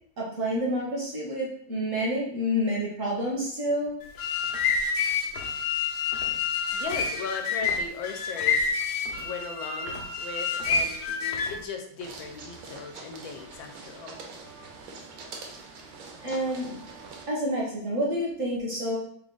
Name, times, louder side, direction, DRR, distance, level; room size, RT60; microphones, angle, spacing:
voice 1, 0.2-4.0 16.2-16.8 17.3-19.0, equal, 55° right, -4 dB, 1.0 m, -28 dB
sound 1, 4.0-11.6, left 5 dB, 65° left, 1.0 m, -28 dB
voice 2, 6.7-8.7 9.1-11.2 11.5-14.2, left 5 dB, 85° left, 4 dB, 1.4 m, -37 dB
sound 2, 12.0-17.3, right 4 dB, 70° right, 1.3 m, -44 dB
3.8 x 2.4 x 3.7 m, 0.65 s
omnidirectional pair, 2.1 m